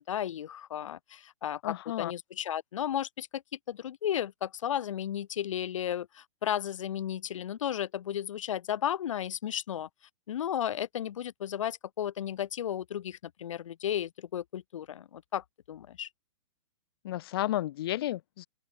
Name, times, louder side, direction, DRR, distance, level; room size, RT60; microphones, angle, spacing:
voice 1, 0.0-3.4 3.7-9.9 10.3-16.1, left 10 dB, 70° left, 0.9 m, -34 dB
voice 2, 1.6-2.1 17.0-18.5, left 14 dB, 45° left, 0.6 m, -32 dB
open air
hypercardioid pair, 160°, 17 cm